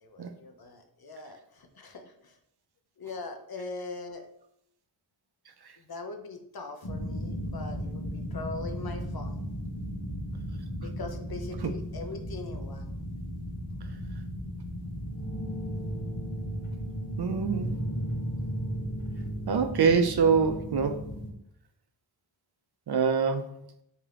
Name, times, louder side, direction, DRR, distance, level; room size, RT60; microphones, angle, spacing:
voice 1, 0.0-2.3 3.0-4.3 5.8-9.4 10.8-12.9, left 3 dB, 50° left, 5 dB, 0.6 m, -41 dB
sound 1, 6.8-21.3, equal, 70° left, 1.0 m, -35 dB
voice 2, 17.2-17.8 19.5-21.0 22.9-23.5, right 6 dB, 55° right, 8 dB, 0.5 m, -24 dB
3.6 x 2.8 x 3.3 m, 0.75 s
wide cardioid pair, 45°, 47 cm